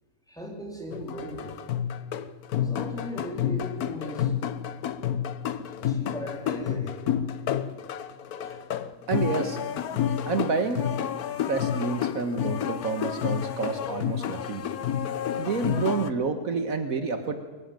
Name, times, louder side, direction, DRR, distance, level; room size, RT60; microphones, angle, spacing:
voice 1, 0.3-1.6 2.6-4.3 5.8-7.1 8.3-8.6 11.4-11.6, equal, ahead, 0 dB, 4.2 m, -38 dB
sound 1, 0.9-16.1, left 9 dB, 80° left, 1.4 m, -30 dB
voice 2, 9.1-9.6 10.3-10.9 11.4-14.6 15.4-17.4, right 4 dB, 65° right, 7 dB, 1.8 m, -29 dB
23.0 x 14.5 x 9.1 m, 1.4 s
omnidirectional pair, 1.6 m